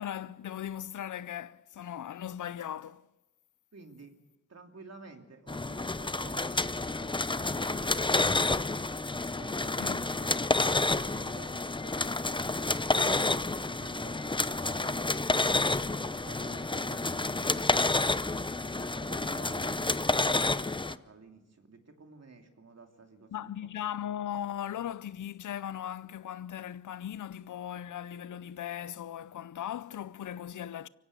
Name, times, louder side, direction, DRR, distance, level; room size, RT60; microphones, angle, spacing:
voice 1, 0.0-3.1 9.8-10.0 23.3-30.9, left 10 dB, 80° left, 0.6 m, -38 dB
voice 2, 3.7-4.1 4.5-8.7 9.3-15.5 16.0-17.7 18.6-23.5, right 3 dB, 60° right, 3.0 m, -52 dB
sound 1, 5.5-20.9, left 2 dB, 15° left, 0.7 m, -29 dB
23.5 x 16.5 x 6.7 m
cardioid pair, 45°, 30 cm